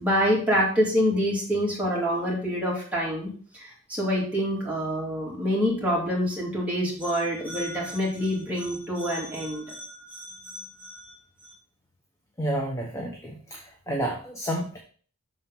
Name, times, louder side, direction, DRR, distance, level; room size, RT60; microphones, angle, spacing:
voice 1, 0.0-11.1, equal, 5° right, -5 dB, 2.8 m, -27 dB
voice 2, 12.4-14.8, right 1 dB, 15° left, 0 dB, 1.0 m, -30 dB
6.6 x 4.4 x 5.5 m, 0.44 s
head